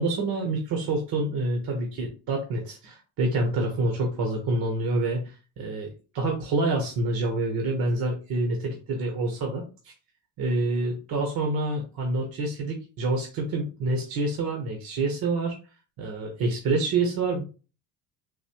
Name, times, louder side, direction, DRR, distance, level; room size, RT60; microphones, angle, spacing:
voice 1, 0.0-9.9 10.4-15.6 16.0-17.4, right 2 dB, 55° right, 2 dB, 1.1 m, -27 dB
4.0 x 2.6 x 2.9 m, 0.34 s
supercardioid pair, 80°, 42 cm